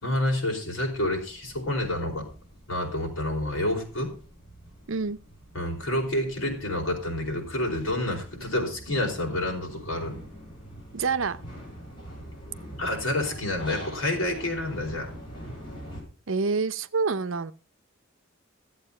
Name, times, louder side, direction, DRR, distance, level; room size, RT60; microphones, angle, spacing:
voice 1, 0.0-2.3 2.7-4.1 5.5-10.2 12.8-15.1, left 1 dB, 80° left, 4.8 m, -28 dB
sound 1, 0.9-16.0, equal, 25° left, 6.5 m, -44 dB
voice 2, 4.9-5.2 10.9-11.4 16.3-17.5, right 4 dB, 75° right, 0.7 m, -27 dB
14.5 x 8.1 x 5.4 m
head